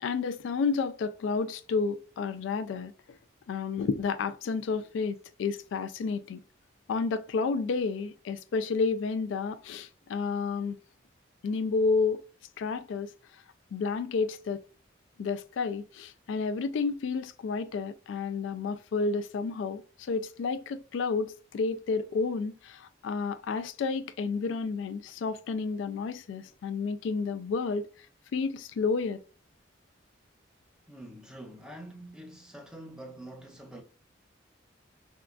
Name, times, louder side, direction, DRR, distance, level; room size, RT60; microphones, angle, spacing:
voice 1, 0.0-2.9 3.5-6.4 6.9-10.8 11.4-12.2 12.6-13.1 13.7-14.6 15.2-27.9 28.3-29.2, left 4 dB, 75° left, 0.3 m, -31 dB
voice 2, 30.9-33.8, right 1 dB, 5° right, 0.5 m, -45 dB
3.6 x 2.3 x 2.3 m
head